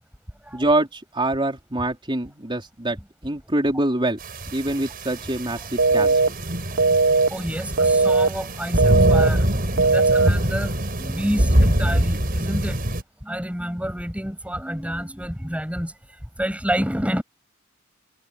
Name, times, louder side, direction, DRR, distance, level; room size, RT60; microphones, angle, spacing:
voice 1, 0.5-3.0 3.2-4.2 4.5-6.2, right 1 dB, 25° right, 3.8 m, -25 dB
sound 1, 4.2-13.0, equal, 45° right, 4.4 m, -24 dB
sound 2, 5.8-6.3 6.8-7.3 7.8-8.3 8.8-9.3 9.8-10.3, right 3 dB, 80° right, 0.7 m, -17 dB
voice 2, 7.3-12.9 13.2-15.9 16.4-17.2, equal, 5° right, 6.9 m, -29 dB
head